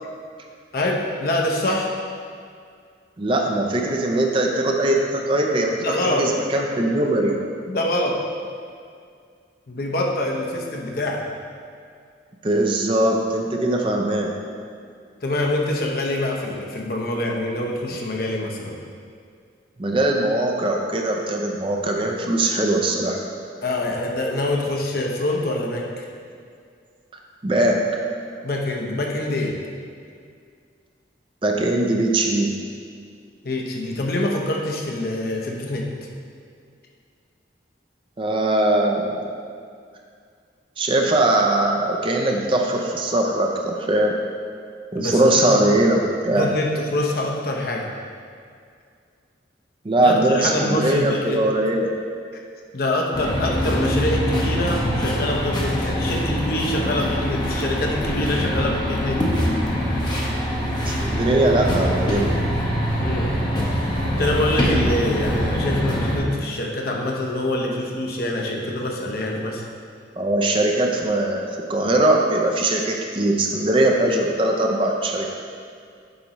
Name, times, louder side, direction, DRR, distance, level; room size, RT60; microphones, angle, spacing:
voice 1, 0.7-1.9 5.8-6.3 7.7-8.2 9.7-11.2 15.2-18.7 23.6-26.1 28.4-29.6 33.4-35.9 45.0-45.2 45.5-45.6 46.3-47.9 50.0-51.4 52.7-59.2 63.0-63.3 64.2-69.6, left 1 dB, 55° left, -1 dB, 0.8 m, -25 dB
voice 2, 3.2-7.4 12.4-14.3 19.8-23.2 27.4-27.8 31.4-32.6 38.2-39.3 40.8-44.2 44.9-46.5 49.8-51.9 60.9-62.3 70.2-75.3, right 1 dB, 30° right, 1 dB, 0.5 m, -21 dB
sound 1, 53.1-66.2, equal, 25° left, 0.8 m, -23 dB
7.9 x 5.2 x 3.0 m, 2.2 s
head